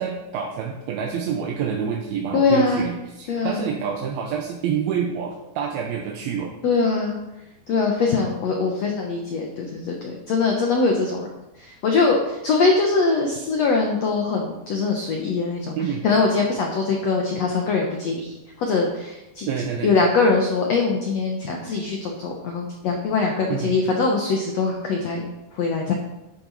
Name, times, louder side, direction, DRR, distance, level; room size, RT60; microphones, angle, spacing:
voice 1, 0.0-6.5 15.8-16.1 19.5-19.9 23.5-23.7, right 7 dB, 75° right, 1 dB, 2.6 m, -27 dB
voice 2, 2.3-2.9 3.3-3.7 6.6-7.2 7.7-11.3 11.6-15.7 16.0-19.5 19.8-25.2 25.5-25.9, left 4 dB, 85° left, 1 dB, 1.4 m, -22 dB
11.5 x 8.9 x 4.1 m, 0.97 s
omnidirectional pair, 4.7 m